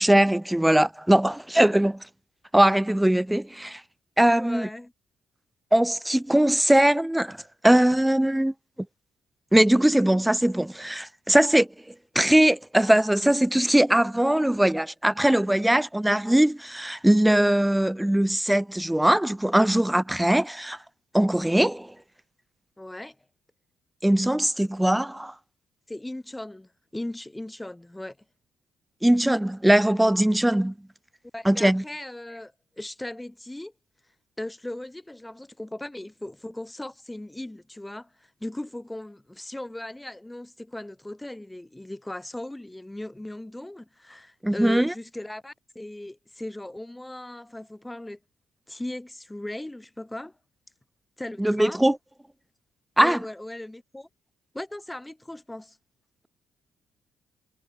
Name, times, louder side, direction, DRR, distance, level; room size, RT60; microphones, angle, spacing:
voice 1, 0.0-2.0 2.5-3.8 4.2-4.7 5.7-7.4 7.6-8.5 9.5-11.7 12.2-20.8 21.1-21.9 24.0-25.3 29.0-30.7 31.4-31.8 44.4-44.9 51.4-52.0 53.0-53.2, right 1 dB, 5° right, 0.4 m, -21 dB
voice 2, 4.4-4.9 22.8-23.2 25.9-28.2 31.3-33.7 34.4-48.2 48.7-50.3 51.2-51.8 53.0-54.1 54.5-55.8, left 1 dB, 10° left, 5.9 m, -38 dB
cardioid pair, 90°, 0 cm